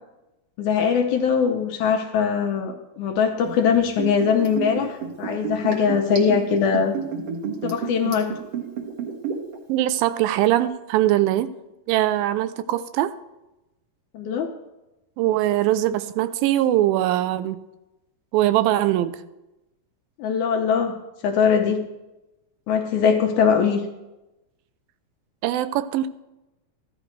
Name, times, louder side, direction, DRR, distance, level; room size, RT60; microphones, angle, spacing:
voice 1, 0.6-7.0 7.6-8.3 14.1-14.5 20.2-21.0 21.2-21.9 22.7-23.8, left 6 dB, 75° left, 1.9 m, -21 dB
Liquid, 3.4-9.6 9.9-10.0, right 7 dB, 50° right, 1.9 m, -30 dB
voice 2, 9.7-11.5 11.9-13.1 15.2-17.6 18.3-19.2 25.4-26.1, right 14 dB, 85° right, 2.4 m, -21 dB
14.5 x 11.5 x 3.2 m
omnidirectional pair, 4.1 m